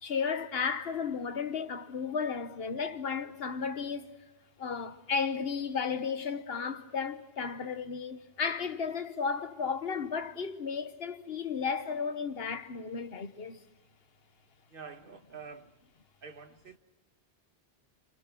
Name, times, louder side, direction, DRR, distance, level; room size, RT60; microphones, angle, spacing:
voice 1, 0.0-4.1 4.6-13.6, left 5 dB, 65° left, 1.4 m, -34 dB
voice 2, 14.7-15.7 16.2-16.8, right 5 dB, 55° right, 1.5 m, -47 dB
26.5 x 26.5 x 6.0 m
omnidirectional pair, 1.1 m